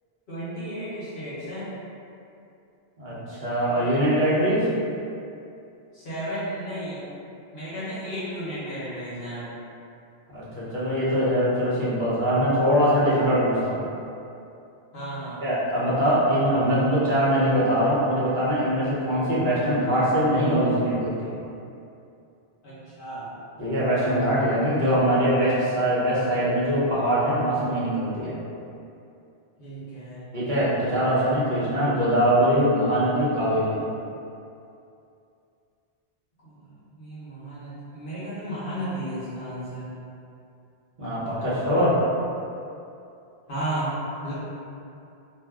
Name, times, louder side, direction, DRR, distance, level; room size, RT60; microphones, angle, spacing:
voice 1, 0.3-1.7 5.9-7.0 7.5-9.4 14.9-15.4 22.6-23.3 29.6-30.3 36.4-39.9 43.5-44.3, right 1 dB, 60° left, -12 dB, 1.0 m, -33 dB
voice 2, 3.0-4.7 10.3-13.8 15.4-21.3 23.6-28.3 30.3-33.7 41.0-42.0, equal, 50° right, -10 dB, 1.0 m, -22 dB
2.5 x 2.2 x 3.5 m, 2.7 s
omnidirectional pair, 1.1 m